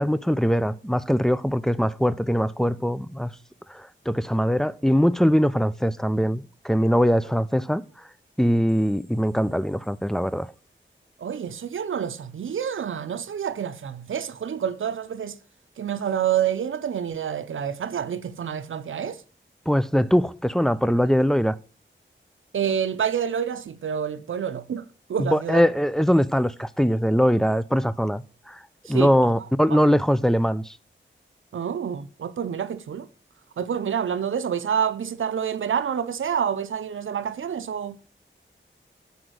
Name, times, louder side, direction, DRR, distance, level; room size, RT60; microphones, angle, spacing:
voice 1, 0.0-3.3 3.7-7.8 8.4-10.5 19.7-21.6 25.2-28.6 28.9-30.7, equal, ahead, 0.5 m, -22 dB
voice 2, 11.2-15.4 15.8-19.2 22.5-25.6 28.9-29.3 31.5-33.1 33.6-38.0, right 8 dB, 80° right, 0.6 m, -28 dB
7.9 x 5.0 x 6.3 m
cardioid pair, 60°, 20 cm